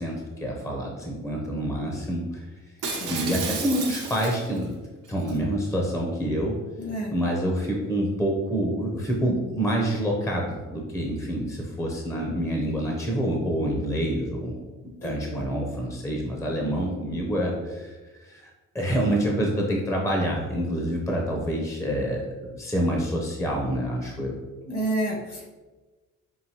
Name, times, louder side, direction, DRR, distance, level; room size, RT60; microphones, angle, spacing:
voice 1, 0.0-2.5 3.1-4.7 5.1-6.5 7.1-14.7 15.0-24.3, equal, 10° left, -1 dB, 0.7 m, -27 dB
Shatter, 2.8-4.6 5.1-5.4, right 5 dB, 80° right, 0.8 m, -32 dB
voice 2, 2.9-3.2 6.8-7.1 15.0-15.4 24.6-25.5, right 1 dB, 50° left, -1 dB, 1.3 m, -30 dB
5.5 x 2.6 x 2.9 m, 1.2 s
cardioid pair, 90°, 30 cm